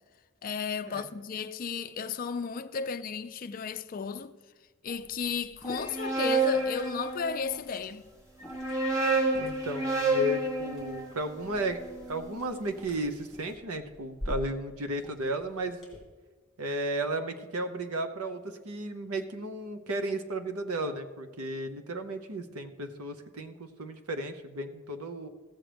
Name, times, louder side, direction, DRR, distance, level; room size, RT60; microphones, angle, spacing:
voice 1, 0.4-4.3 4.8-8.1, left 5 dB, 40° left, 0.4 m, -34 dB
Liquid, 4.9-16.0, left 1 dB, ahead, 2.6 m, -47 dB
sound 1, 5.7-7.6 8.4-12.6, right 2 dB, 15° right, 1.1 m, -30 dB
voice 2, 9.4-15.8 16.6-25.3, right 1 dB, 80° right, 0.9 m, -34 dB
15.5 x 7.6 x 3.4 m
head